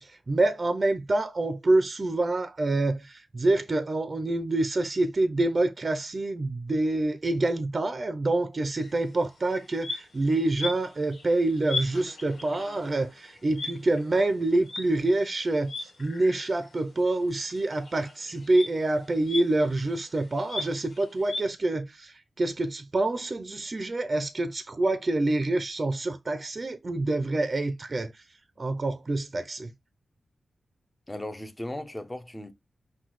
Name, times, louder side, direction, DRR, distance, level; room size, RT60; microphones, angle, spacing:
voice 1, 0.0-28.2 28.6-29.7, right 2 dB, 35° right, 0.5 m, -27 dB
sound 1, 8.8-8.9 9.4-16.8 17.0-21.4, left 3 dB, 80° left, 1.4 m, -38 dB
voice 2, 31.1-32.5, left 1 dB, 15° left, 0.7 m, -37 dB
5.6 x 2.3 x 3.1 m
wide cardioid pair, 90°, 0 cm